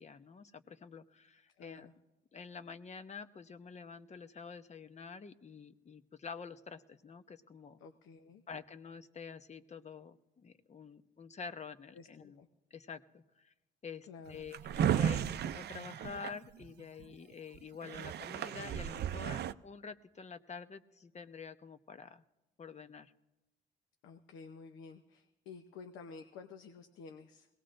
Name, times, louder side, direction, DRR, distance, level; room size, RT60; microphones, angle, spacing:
voice 1, 0.0-1.9 2.3-7.8 8.5-12.4 12.7-13.5 13.8-22.2 22.6-23.1, left 5 dB, 35° left, 10 dB, 0.8 m, -48 dB
voice 2, 1.6-1.9 7.8-8.4 11.9-12.5 14.1-14.4 24.0-27.5, left 5 dB, 90° left, 6 dB, 0.8 m, -51 dB
Drawer open or close, 14.3-17.0 17.5-17.6 17.8-19.5, right 9 dB, 55° right, 0.5 m, -34 dB
22.0 x 18.0 x 2.6 m, 1.0 s
cardioid pair, 90°, 20 cm